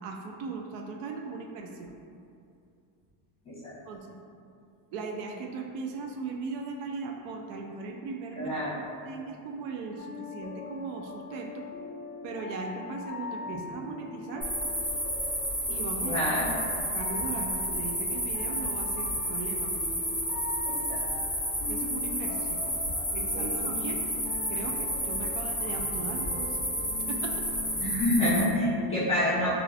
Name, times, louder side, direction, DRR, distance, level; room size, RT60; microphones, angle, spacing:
voice 1, 0.0-1.9 3.9-4.2 4.9-11.7 12.2-14.5 15.7-16.2 16.9-19.7 21.7-22.6 23.1-24.0 24.5-26.6 27.1-27.5, right 4 dB, 80° right, 2 dB, 0.5 m, -38 dB
voice 2, 8.4-8.8 16.0-16.5 20.6-21.0 23.3-23.7 27.8-29.5, left 1 dB, 15° left, -10 dB, 1.2 m, -28 dB
sound 1, 10.0-27.9, left 4 dB, 40° left, 0.4 m, -42 dB
sound 2, 14.4-28.4, equal, ahead, 1.4 m, -31 dB
3.6 x 2.5 x 3.3 m, 2.4 s
cardioid pair, 170°, 44 cm